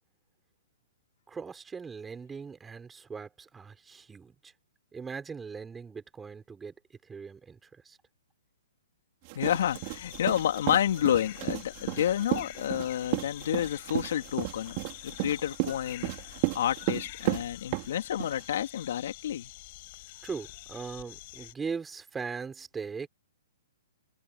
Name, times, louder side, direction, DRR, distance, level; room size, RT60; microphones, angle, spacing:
voice 1, 1.3-4.5 4.9-6.7 7.0-8.0 20.2-23.1, right 5 dB, 10° right, 5.4 m, -40 dB
voice 2, 9.3-14.8 15.0-16.1 16.5-19.5, left 10 dB, 65° left, 2.4 m, -29 dB
sound 1, 9.3-18.4, right 27 dB, 40° right, 3.9 m, -33 dB
sound 2, 9.4-21.5, left 20 dB, 45° left, 4.8 m, -46 dB
hypercardioid pair, 135°, 0 cm